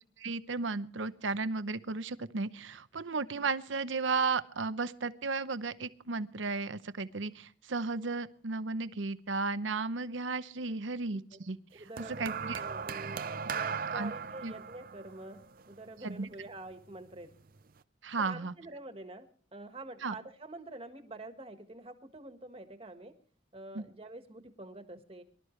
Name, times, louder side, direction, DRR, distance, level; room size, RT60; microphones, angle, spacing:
voice 1, 0.2-12.6 13.9-14.1 14.4-14.5 16.0-16.3 18.0-18.5 20.0-20.1 23.7-23.8, right 4 dB, 85° right, 13 dB, 0.8 m, -34 dB
voice 2, 11.7-15.4 15.7-17.3 18.2-23.1 23.5-25.2, right 2 dB, 30° right, 7 dB, 1.6 m, -47 dB
sound 1, 12.0-16.4 17.3-17.6, right 6 dB, 50° right, 0.6 m, -38 dB
24.0 x 12.5 x 3.2 m, 0.43 s
head